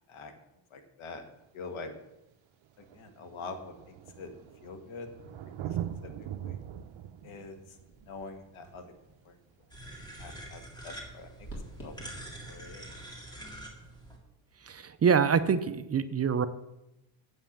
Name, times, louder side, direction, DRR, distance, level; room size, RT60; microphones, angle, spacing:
voice 1, 0.7-1.3 1.5-1.9 2.8-4.3 4.6-5.1 5.4-5.8 6.0-6.6 7.2-7.6 8.0-8.8 9.2-9.3 10.2-11.5 11.8-11.9 12.4-12.9, left 4 dB, 75° left, 7 dB, 1.5 m, -44 dB
Thunder, 1.3-1.4 2.3-2.4 2.6-9.9 11.6-11.7, right 10 dB, 70° right, 0.7 m, -42 dB
sound 1, 7.2-14.9, right 1 dB, 30° left, 3.7 m, -53 dB
sound 2, 9.7-14.2, right 1 dB, 10° left, 2.0 m, -45 dB
voice 2, 14.6-16.5, right 6 dB, 30° right, 12 dB, 0.5 m, -25 dB
8.1 x 5.5 x 7.2 m, 0.91 s
cardioid pair, 105°, 48 cm